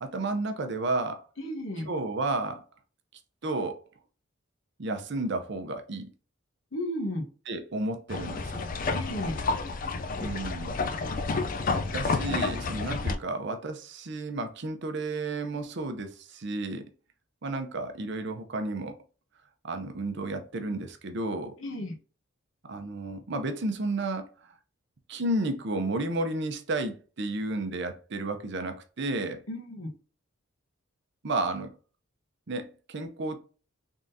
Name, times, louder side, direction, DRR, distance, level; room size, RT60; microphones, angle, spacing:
voice 1, 0.0-1.2 1.8-2.6 3.4-3.8 4.8-6.1 7.5-8.7 10.2-10.8 11.9-16.8 17.4-18.9 19.6-21.5 22.7-24.3 25.1-29.4 31.2-31.7 32.5-33.4, right 2 dB, 55° right, 0.6 m, -32 dB
voice 2, 1.4-1.9 6.7-7.3 8.9-9.4 21.6-21.9 29.5-29.9, left 1 dB, 65° left, 1.1 m, -33 dB
sound 1, 8.1-13.2, left 3 dB, 40° left, 0.4 m, -30 dB
3.7 x 3.7 x 2.6 m
head